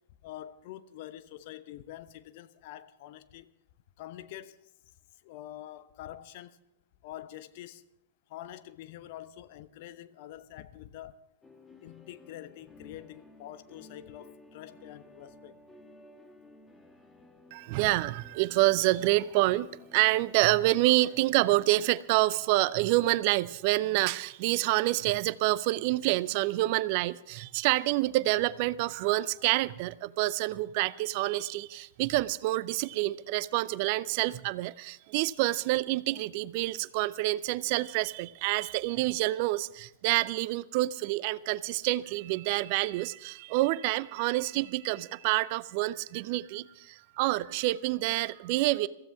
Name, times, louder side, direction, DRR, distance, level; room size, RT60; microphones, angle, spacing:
voice 1, 0.2-3.5 4.0-4.7 5.2-6.6 7.0-7.8 8.3-11.2 11.8-15.6, left 13 dB, 50° left, 0.9 m, -46 dB
sound 1, 11.4-22.1, left 2 dB, 10° left, 1.6 m, -55 dB
voice 2, 17.5-48.9, right 18 dB, 45° right, 0.5 m, -27 dB
23.0 x 15.5 x 3.5 m
figure-of-eight pair, 105°, 0 cm